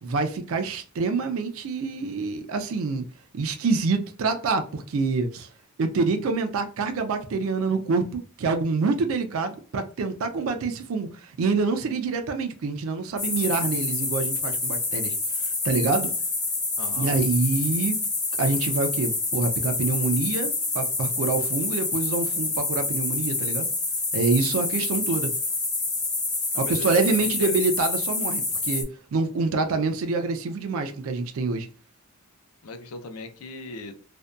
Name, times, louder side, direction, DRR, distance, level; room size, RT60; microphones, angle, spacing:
voice 1, 0.0-3.0 3.3-5.5 5.8-15.2 15.4-16.1 17.0-18.0 18.4-23.7 24.1-25.3 26.6-31.7, right 4 dB, 65° right, 0.4 m, -26 dB
sound 1, 13.2-28.8, left 3 dB, 20° left, 0.5 m, -27 dB
voice 2, 16.8-17.1 26.5-27.6 32.6-34.1, left 2 dB, 75° left, 0.5 m, -38 dB
2.6 x 2.1 x 2.2 m
head